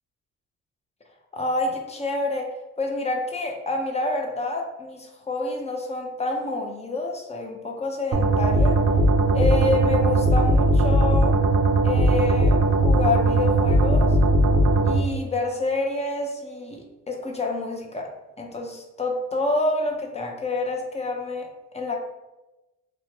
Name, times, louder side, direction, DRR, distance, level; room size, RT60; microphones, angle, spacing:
voice 1, 1.3-8.8 9.3-11.4 11.8-14.2 14.8-18.1 18.4-21.5 21.7-22.0, left 2 dB, 20° left, 1 dB, 0.5 m, -28 dB
sound 1, 8.1-15.0, right 1 dB, 60° right, 0.5 m, -19 dB
3.0 x 2.1 x 2.8 m, 1.0 s
cardioid pair, 90°, 30 cm